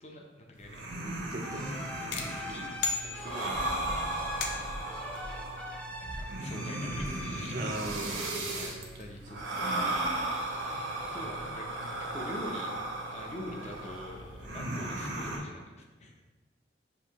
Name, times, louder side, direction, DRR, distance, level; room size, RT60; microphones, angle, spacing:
voice 1, 0.0-0.9 2.0-4.9 6.0-7.7 8.1-9.9 10.9-11.7 12.0-12.7 13.1-16.2, left 1 dB, 40° left, 1 dB, 0.6 m, -45 dB
sound 1, 0.5-15.4, right 1 dB, 85° right, 0.8 m, -36 dB
voice 2, 1.3-1.7 2.0-2.2 2.5-2.7 3.4-3.6 7.5-8.2 13.6-13.7, right 2 dB, 55° right, 2 dB, 0.5 m, -39 dB
sound 2, 1.4-8.8, equal, 5° left, 0.3 m, -44 dB
sound 3, 2.1-3.7 4.4-4.9, left 5 dB, 80° left, 0.5 m, -36 dB
6.4 x 2.7 x 2.9 m, 1.2 s
head